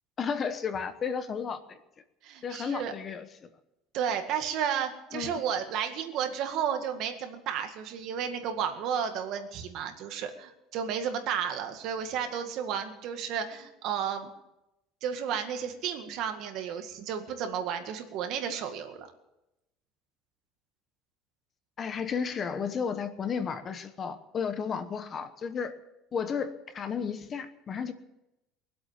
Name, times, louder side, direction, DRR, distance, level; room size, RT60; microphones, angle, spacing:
voice 1, 0.2-1.8 2.4-3.3 5.1-5.4 21.8-25.7 26.1-27.9, left 6 dB, 30° left, 10 dB, 1.1 m, -33 dB
voice 2, 2.2-2.9 3.9-14.3 15.0-19.1, right 8 dB, 55° right, 6 dB, 1.9 m, -32 dB
22.0 x 8.2 x 7.5 m, 0.91 s
cardioid pair, 145°, 0 cm